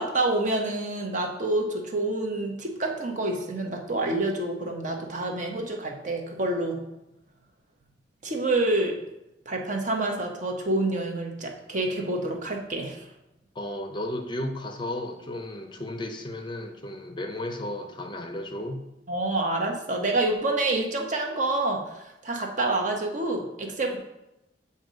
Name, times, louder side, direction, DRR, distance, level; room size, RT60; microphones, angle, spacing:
voice 1, 0.0-6.8 8.2-9.0 9.5-13.1 19.1-24.0, right 2 dB, 45° right, 2 dB, 0.9 m, -27 dB
voice 2, 13.6-18.8, left 1 dB, 25° left, 5 dB, 0.5 m, -34 dB
7.7 x 2.8 x 5.0 m, 0.90 s
head